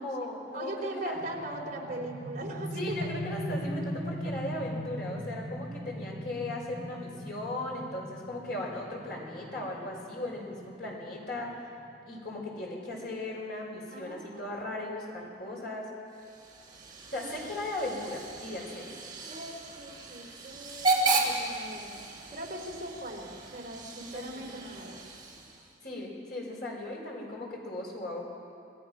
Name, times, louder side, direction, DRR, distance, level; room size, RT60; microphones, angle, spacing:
voice 1, 0.0-1.2 2.7-11.6 12.1-15.9 17.1-18.9 24.1-24.3 25.8-28.2, left 1 dB, 55° left, -2 dB, 5.1 m, -37 dB
voice 2, 0.5-3.1 13.9-14.8 17.2-17.5 19.2-22.0 22.3-25.0, right 1 dB, 45° right, -1 dB, 3.2 m, -40 dB
sound 1, 1.1-12.6, equal, 35° left, 4.9 m, -40 dB
Hiss / Train / Alarm, 16.1-25.8, right 3 dB, 25° right, 2.8 m, -34 dB
26.0 x 18.0 x 6.0 m, 2.4 s
head